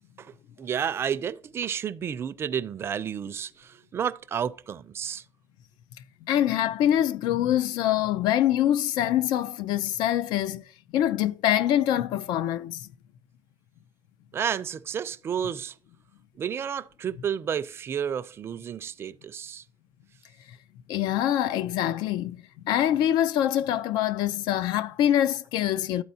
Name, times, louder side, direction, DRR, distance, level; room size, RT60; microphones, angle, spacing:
voice 1, 0.2-5.2 14.3-15.7 16.4-19.6, right 8 dB, 35° right, 0.4 m, -31 dB
voice 2, 6.2-10.6 10.9-12.9 20.9-26.0, left 11 dB, 75° left, 0.5 m, -25 dB
12.5 x 4.1 x 2.7 m
cardioid pair, 135°, 7 cm